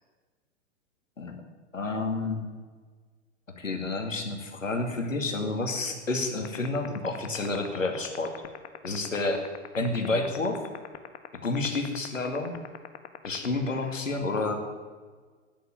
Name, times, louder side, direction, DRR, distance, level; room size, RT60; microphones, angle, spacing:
voice 1, 1.7-2.4 3.6-8.4 8.8-9.4 9.7-10.6 11.4-12.5 13.2-14.6, left 3 dB, 85° left, 4 dB, 2.4 m, -29 dB
sound 1, 6.4-14.0, left 13 dB, 60° left, 1.4 m, -39 dB
14.0 x 10.5 x 8.8 m, 1.5 s
figure-of-eight pair, 105°, 38 cm